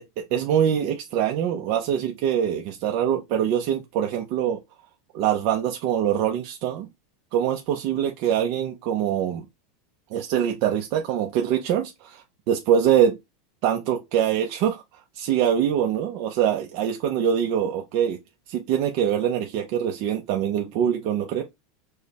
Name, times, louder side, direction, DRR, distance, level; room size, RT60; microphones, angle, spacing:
voice 1, 0.3-4.6 5.1-6.9 7.3-9.4 10.1-13.2 13.6-14.8 15.2-18.2 18.5-21.4, right 9 dB, 50° right, 0.5 m, -24 dB
4.7 x 2.1 x 2.8 m
supercardioid pair, 155°, 0 cm